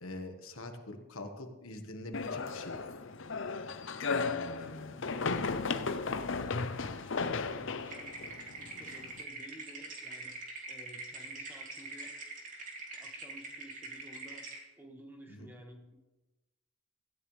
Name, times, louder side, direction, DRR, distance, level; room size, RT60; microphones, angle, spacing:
voice 1, 0.0-2.9 4.1-5.0 5.3-5.5 15.3-15.5, left 1 dB, 90° left, 5 dB, 1.6 m, -45 dB
sound 1, 2.1-9.2, left 4 dB, 65° left, 0.7 m, -35 dB
voice 2, 3.8-4.8 5.6-10.4 10.7-16.0, equal, 10° right, 1 dB, 1.8 m, -54 dB
sound 2, 7.9-14.6, right 2 dB, 40° right, 2.8 m, -44 dB
17.0 x 14.5 x 3.4 m, 1.1 s
head